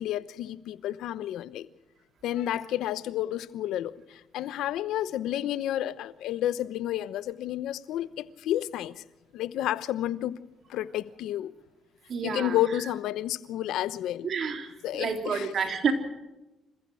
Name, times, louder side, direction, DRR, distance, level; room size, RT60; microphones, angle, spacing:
voice 1, 0.0-1.7 2.2-9.0 9.3-10.4 10.7-11.5 12.2-14.3 14.8-15.5, left 12 dB, 85° left, 0.9 m, -31 dB
voice 2, 12.1-12.8 14.2-15.9, right 6 dB, 55° right, 3.6 m, -30 dB
28.0 x 15.0 x 6.3 m
cardioid pair, 90°, 0 cm